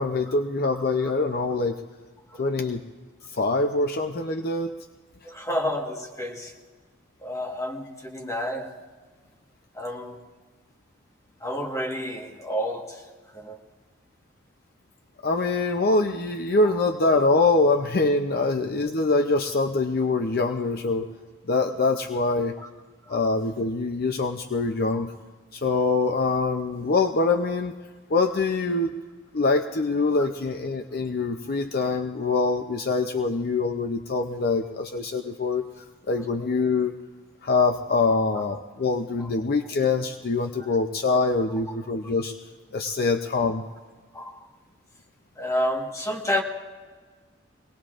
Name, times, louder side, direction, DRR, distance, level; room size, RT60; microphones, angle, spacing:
voice 1, 0.0-1.8 2.4-2.8 3.3-4.7 15.2-21.1 21.5-22.6 23.1-25.1 25.5-27.7 28.1-28.9 29.3-35.6 36.1-36.9 37.4-42.4 42.7-43.6, left 3 dB, 50° left, 0.6 m, -24 dB
voice 2, 5.2-6.5 7.2-8.8 9.7-10.2 11.4-13.6 18.4-18.5 23.1-23.2 30.2-30.3 35.2-35.3 38.3-38.4 39.2-39.3 42.9-43.0 44.1-44.5 45.4-46.4, equal, 15° left, 1.4 m, -30 dB
24.0 x 18.5 x 2.5 m
head